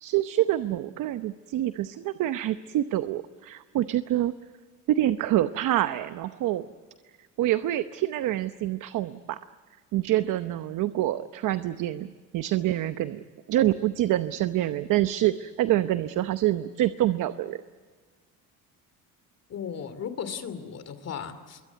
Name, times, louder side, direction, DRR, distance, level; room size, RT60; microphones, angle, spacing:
voice 1, 0.0-4.3 4.9-6.7 7.4-9.4 9.9-13.2 13.5-17.6, right 14 dB, 65° right, 11 dB, 0.9 m, -26 dB
voice 2, 19.5-21.6, left 7 dB, 50° left, 11 dB, 2.7 m, -36 dB
26.0 x 22.5 x 8.1 m, 1.5 s
cardioid pair, 115°, 34 cm